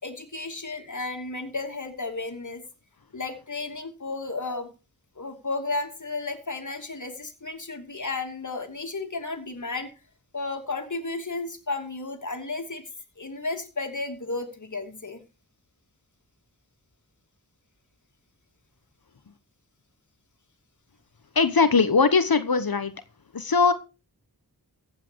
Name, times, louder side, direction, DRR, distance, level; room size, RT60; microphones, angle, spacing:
voice 1, 0.0-2.6 3.1-4.7 5.2-9.9 10.3-12.8 13.2-15.2, left 3 dB, 50° left, 5 dB, 2.8 m, -33 dB
voice 2, 21.3-22.9 23.3-23.7, left 4 dB, 65° left, 11 dB, 1.2 m, -20 dB
15.5 x 8.8 x 4.7 m, 0.31 s
wide cardioid pair, 75°, 38 cm